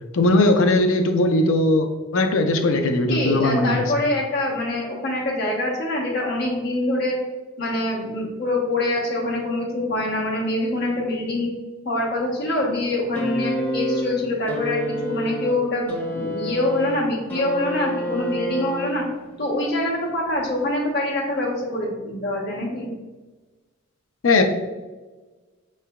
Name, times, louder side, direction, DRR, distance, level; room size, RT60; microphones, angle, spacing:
voice 1, 0.1-3.8 24.2-24.4, left 2 dB, 80° left, 5 dB, 0.5 m, -19 dB
voice 2, 3.1-7.2 7.6-11.5 11.8-19.0 19.4-22.9, left 1 dB, 55° left, -3 dB, 1.1 m, -25 dB
sound 1, 13.1-19.3 20.4-20.5, equal, 10° left, 0.7 m, -28 dB
5.7 x 3.2 x 2.3 m, 1.2 s
head